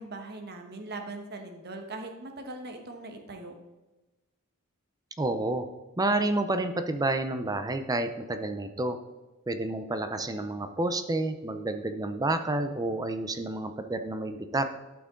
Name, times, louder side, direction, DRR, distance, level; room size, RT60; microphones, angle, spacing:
voice 1, 0.0-3.5, right 2 dB, 50° right, 5 dB, 1.3 m, -40 dB
voice 2, 5.2-5.7 6.0-9.0 9.5-14.7, right 2 dB, 20° right, 8 dB, 0.5 m, -29 dB
12.0 x 5.9 x 3.8 m, 1.1 s
head